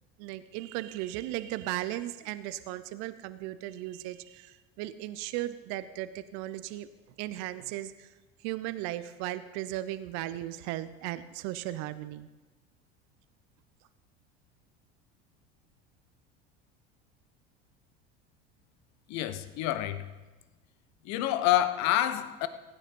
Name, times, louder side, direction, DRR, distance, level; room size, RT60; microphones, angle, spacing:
voice 1, 0.2-6.9 7.2-8.1 8.4-12.3, right 15 dB, 60° right, 13 dB, 0.7 m, -36 dB
voice 2, 19.1-20.1 21.0-22.5, left 13 dB, 60° left, 12 dB, 1.1 m, -27 dB
16.0 x 9.3 x 5.4 m, 1.2 s
hypercardioid pair, 85°, 31 cm